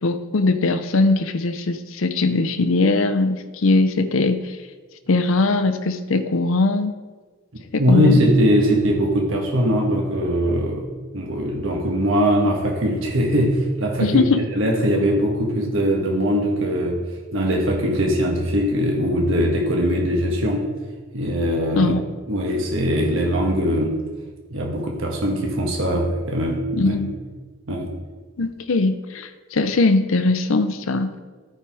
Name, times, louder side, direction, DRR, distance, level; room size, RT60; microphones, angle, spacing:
voice 1, 0.0-4.6 5.1-6.9 7.7-8.2 14.0-14.5 21.7-22.0 26.7-27.1 28.4-31.2, left 3 dB, 65° left, 10 dB, 0.6 m, -20 dB
voice 2, 7.8-10.9 11.1-14.2 14.5-17.0 17.3-20.7 21.1-21.9 22.3-24.0 24.5-27.0 27.7-27.9, equal, 65° right, 0 dB, 1.3 m, -21 dB
13.5 x 4.6 x 4.8 m, 1.4 s
head